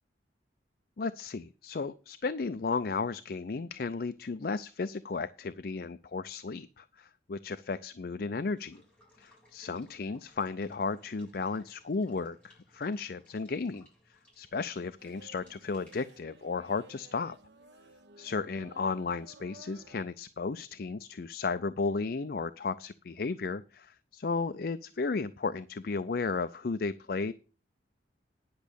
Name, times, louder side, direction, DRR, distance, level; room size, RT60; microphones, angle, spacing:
voice 1, 1.0-8.8 9.2-13.9 14.4-17.4 18.2-27.3, left 4 dB, 55° left, 13 dB, 0.5 m, -34 dB
Water / Water tap faucet / Liquid, 8.2-17.9, left 1 dB, 10° left, 6.1 m, -64 dB
sound 1, 15.0-20.0, right 2 dB, 80° right, 1.3 m, -56 dB
10.5 x 6.2 x 6.8 m, 0.35 s
head